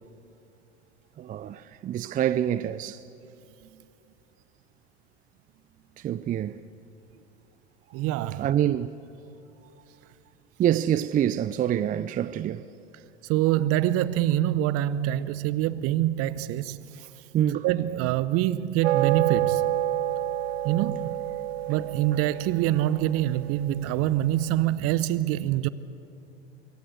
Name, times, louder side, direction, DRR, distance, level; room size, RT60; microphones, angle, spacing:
voice 1, 1.2-3.0 6.0-6.6 8.4-9.0 10.6-12.7 17.3-17.7, right 10 dB, 25° right, 0.5 m, -26 dB
voice 2, 7.9-8.5 13.3-17.1 17.6-19.7 20.6-21.2 21.7-25.7, right 13 dB, 45° right, 0.9 m, -25 dB
sound 1, 18.8-24.3, right 13 dB, 70° right, 0.7 m, -29 dB
25.0 x 23.5 x 6.5 m
hypercardioid pair, 80°, 33 cm